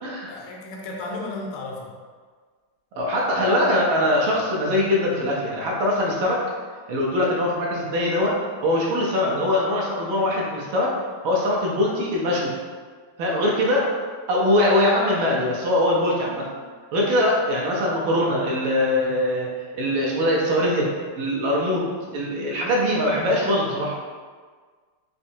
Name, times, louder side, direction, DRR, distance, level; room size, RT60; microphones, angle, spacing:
voice 1, 0.3-1.9, left 2 dB, 85° left, 0 dB, 1.5 m, -33 dB
voice 2, 3.0-6.4 6.9-10.9 11.2-12.5 13.2-13.9 14.3-16.5 16.9-20.9 21.2-21.8 22.1-23.9, left 1 dB, 75° right, -3 dB, 1.4 m, -22 dB
4.2 x 2.7 x 2.6 m, 1.5 s
omnidirectional pair, 2.4 m